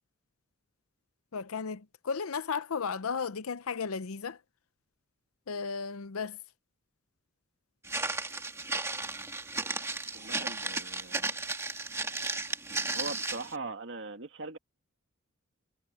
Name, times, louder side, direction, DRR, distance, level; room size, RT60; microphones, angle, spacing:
voice 1, 1.3-4.4 5.5-6.4, left 5 dB, 90° left, 0.7 m, -34 dB
Walk footsteps, 7.8-13.5, right 3 dB, 15° right, 2.2 m, -34 dB
voice 2, 10.1-11.5 12.7-14.6, right 3 dB, 60° right, 2.3 m, -41 dB
head